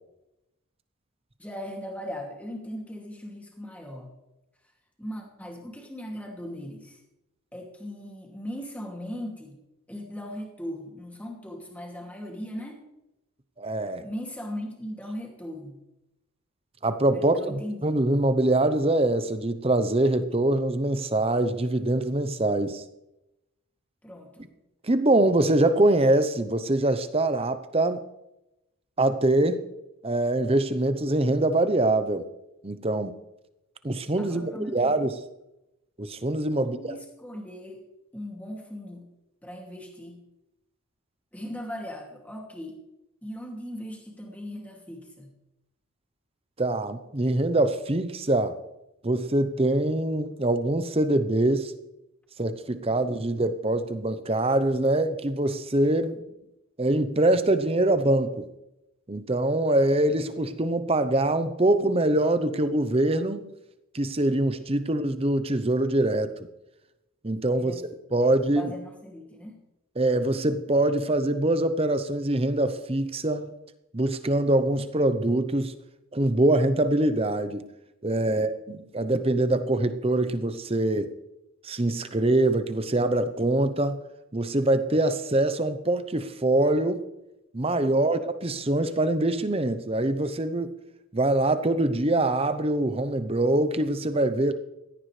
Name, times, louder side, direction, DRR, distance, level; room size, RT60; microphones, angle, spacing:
voice 1, 1.4-4.1 5.0-7.0 7.5-9.6 9.9-12.8 14.0-15.8 17.1-18.0 24.0-24.5 34.2-35.1 36.6-37.9 38.1-39.1 39.4-40.2 41.3-42.8 43.2-45.3 56.2-56.3 67.6-67.8 68.2-69.6, equal, 5° left, 0 dB, 2.5 m, -39 dB
voice 2, 13.6-14.0 16.8-22.8 24.8-28.0 29.0-29.6 30.0-32.3 32.6-33.1 33.8-35.2 36.0-36.8 46.6-48.6 49.0-51.7 52.4-56.2 56.8-58.5 59.1-63.4 63.9-66.3 67.2-67.8 68.1-68.7 70.0-73.5 73.9-75.7 76.1-77.6 78.0-81.1 81.6-84.0 84.3-87.0 87.5-90.7 91.1-94.5, right 1 dB, 25° right, 10 dB, 0.8 m, -24 dB
16.5 x 14.0 x 3.3 m, 0.91 s
head